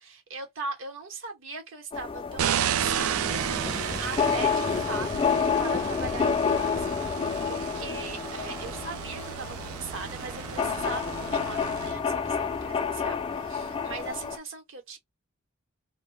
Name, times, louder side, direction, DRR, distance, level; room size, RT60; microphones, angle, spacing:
voice 1, 0.0-15.0, right 3 dB, 65° right, 0.9 m, -40 dB
sound 1, 1.9-14.4, left 6 dB, 25° left, 0.3 m, -29 dB
sound 2, 2.4-11.9, right 10 dB, 80° right, 0.3 m, -33 dB
sound 3, 2.8-14.1, right 1 dB, 15° right, 0.6 m, -42 dB
2.2 x 2.1 x 3.1 m
head